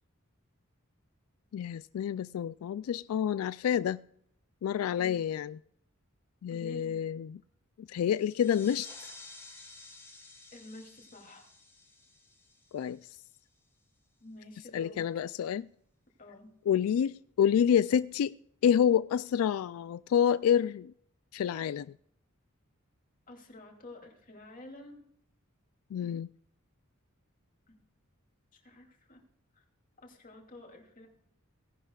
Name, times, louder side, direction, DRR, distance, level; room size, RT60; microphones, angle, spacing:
voice 1, 1.5-4.0 4.6-5.6 6.4-7.4 7.8-9.1 12.7-13.1 14.7-15.7 16.7-18.3 18.6-20.9 21.3-21.9 25.9-26.3, left 8 dB, 85° left, 0.3 m, -28 dB
voice 2, 6.5-7.0 10.5-11.5 14.2-15.0 16.2-16.5 23.3-25.0 28.6-29.2 29.5-29.7 30.0-31.1, left 2 dB, 40° left, 2.7 m, -49 dB
sound 1, 8.1-13.4, left 3 dB, 10° left, 2.7 m, -52 dB
18.0 x 11.0 x 2.3 m
head